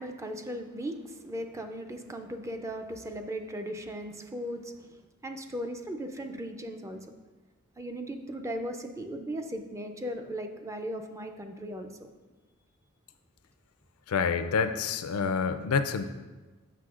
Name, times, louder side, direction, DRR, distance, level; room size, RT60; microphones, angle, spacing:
voice 1, 0.0-7.1 7.8-12.1, equal, 15° right, 5 dB, 0.4 m, -37 dB
voice 2, 14.1-16.0, left 5 dB, 70° left, 9 dB, 0.4 m, -27 dB
7.6 x 5.9 x 2.4 m, 1.2 s
head